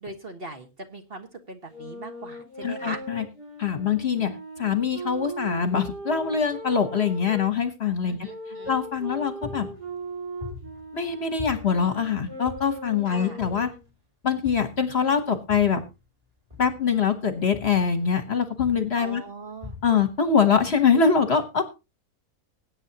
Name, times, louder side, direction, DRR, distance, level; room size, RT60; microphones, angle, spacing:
voice 1, 0.0-3.0 8.1-8.8 13.1-13.4 15.3-15.4 19.0-19.7, right 3 dB, 40° right, 5 dB, 1.6 m, -40 dB
sound 1, 1.7-7.5 8.2-13.9, right 1 dB, 85° right, 5.4 m, -39 dB
voice 2, 2.6-3.2 3.6-8.3 8.7-9.7 10.9-13.7 14.2-15.8 16.6-19.2 19.8-21.6, left 6 dB, 45° left, 8 dB, 1.3 m, -23 dB
sound 2, 8.6-9.1 9.4-11.1 11.4-13.0 13.4-14.0 14.4-16.0 16.5-18.3 18.6-19.1 19.6-20.2, left 5 dB, 25° right, 3.1 m, -43 dB
20.5 x 8.9 x 2.9 m, 0.27 s
omnidirectional pair, 1.7 m